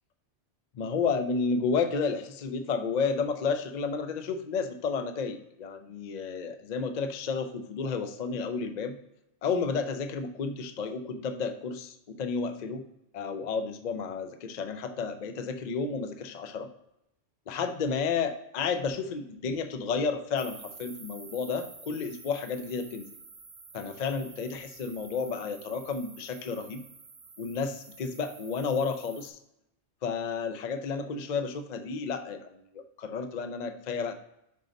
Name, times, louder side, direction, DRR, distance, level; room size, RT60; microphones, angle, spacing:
voice 1, 0.7-9.0 9.4-12.8 13.1-16.7 17.5-23.0 23.7-26.8 27.4-29.4 30.0-34.1, left 5 dB, 50° left, 8 dB, 0.5 m, -31 dB
sound 1, 20.4-29.3, right 4 dB, 40° right, 0.8 m, -49 dB
5.6 x 3.9 x 5.0 m, 0.81 s
omnidirectional pair, 1.3 m